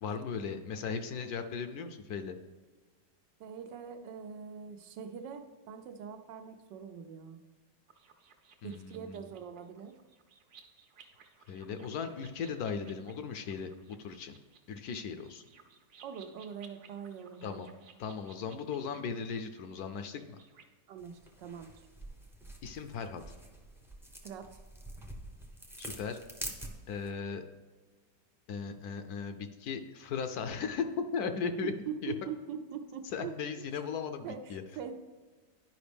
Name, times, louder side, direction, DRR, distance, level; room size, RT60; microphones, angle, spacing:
voice 1, 0.0-2.4 8.6-9.2 11.5-14.4 14.7-15.4 17.4-17.7 18.0-20.4 22.6-23.2 25.8-26.2 26.9-27.4 28.5-31.7 32.0-32.1 33.1-34.6, left 6 dB, 70° left, 8 dB, 1.0 m, -37 dB
voice 2, 3.4-7.4 8.6-9.9 16.0-17.8 20.9-21.9 24.2-24.6 31.6-33.7 34.2-34.9, right 7 dB, 85° right, 6 dB, 1.4 m, -43 dB
sound 1, 7.9-20.6, right 6 dB, 55° right, 1.1 m, -60 dB
sound 2, 21.0-27.1, right 1 dB, 5° right, 0.3 m, -46 dB
10.5 x 5.1 x 3.4 m, 1.4 s
omnidirectional pair, 1.9 m